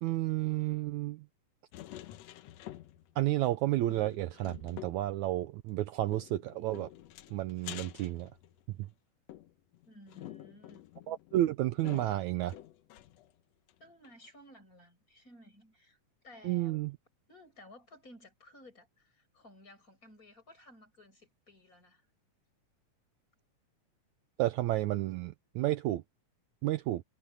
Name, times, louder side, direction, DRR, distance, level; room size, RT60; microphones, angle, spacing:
voice 1, 0.0-1.3 3.1-6.9 7.3-8.3 8.8-8.9 11.1-12.6 16.4-17.0 24.4-26.0 26.6-27.0, right 15 dB, 75° right, 1.8 m, -31 dB
sound 1, 1.7-3.2 3.5-3.6 3.9-5.1 6.1-8.8 9.3-13.3 13.7-13.8 14.0-14.1, left 13 dB, 70° left, 1.7 m, -49 dB
voice 2, 9.9-10.8 13.8-16.0 16.2-16.9 17.3-22.1, left 1 dB, 25° left, 8.0 m, -56 dB
omnidirectional pair, 3.8 m